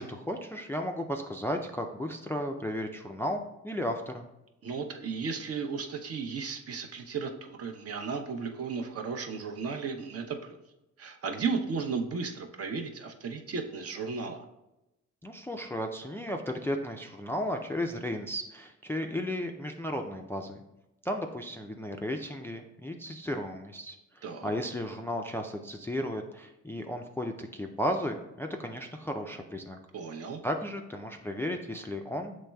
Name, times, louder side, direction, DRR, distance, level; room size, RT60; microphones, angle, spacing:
voice 1, 0.0-4.3 15.2-20.6 21.0-29.8 30.4-32.4, equal, 10° left, 3 dB, 0.3 m, -34 dB
voice 2, 4.6-10.6 11.0-14.4 24.2-24.5 29.9-30.4, right 5 dB, 50° right, 4 dB, 0.7 m, -35 dB
7.3 x 3.1 x 2.2 m, 0.93 s
cardioid pair, 90°, 30 cm